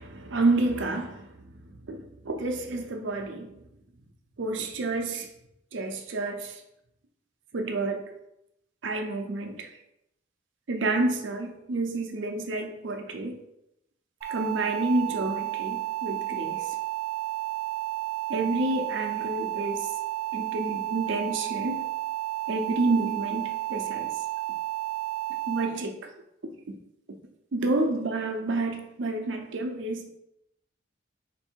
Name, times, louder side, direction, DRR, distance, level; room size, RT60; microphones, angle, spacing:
voice 1, 0.0-1.3 1.9-3.5 4.4-5.3 5.7-6.6 7.5-8.0 8.8-9.7 10.7-13.4 14.2-16.8 18.3-19.9 20.3-21.8 22.5-24.1 25.5-26.1 26.7-26.8 27.5-30.1, right 2 dB, 70° right, 4 dB, 0.5 m, -29 dB
sound 1, 14.2-25.6, right 18 dB, 30° right, 0.8 m, -32 dB
3.5 x 2.6 x 4.3 m, 0.83 s
head